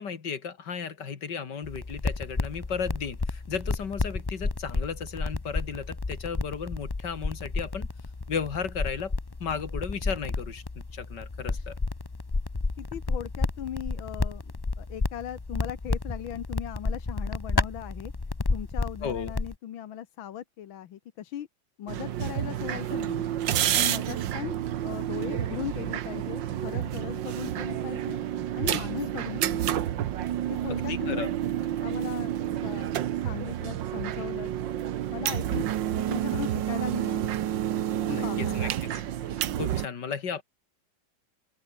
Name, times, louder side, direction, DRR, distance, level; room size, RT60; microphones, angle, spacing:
voice 1, 0.0-7.9 8.3-9.1 9.4-10.6 10.9-11.7 19.0-19.3 30.7-31.3 38.1-38.9 39.6-40.4, left 6 dB, 60° left, 2.5 m, -34 dB
sound 1, 1.6-19.5, left 3 dB, 35° left, 0.4 m, -31 dB
voice 2, 12.8-14.4 14.8-18.1 18.5-21.5 21.8-23.3 23.8-24.6 24.8-28.2 28.5-30.0 30.5-31.3 31.8-32.3 32.6-32.9 33.2-34.5 35.1-35.7 35.9-37.4 38.1-38.7, left 11 dB, 85° left, 1.9 m, -38 dB
sound 2, 21.9-39.9, right 11 dB, 70° right, 1.7 m, -29 dB
open air
omnidirectional pair, 2.1 m